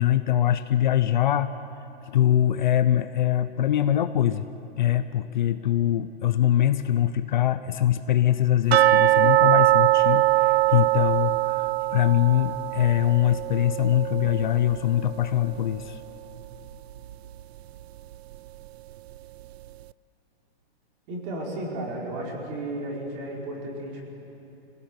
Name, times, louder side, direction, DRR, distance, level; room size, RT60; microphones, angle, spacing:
voice 1, 0.0-1.5 2.1-4.5 4.8-16.0, left 12 dB, 45° left, 10 dB, 0.7 m, -23 dB
sound 1, 8.7-15.6 15.8-15.9 16.5-16.6 17.1-17.2, right 16 dB, 75° right, 0.5 m, -22 dB
voice 2, 21.1-24.2, right 1 dB, 30° right, -2 dB, 4.7 m, -33 dB
26.5 x 17.5 x 9.6 m, 3.0 s
hypercardioid pair, 165°, 32 cm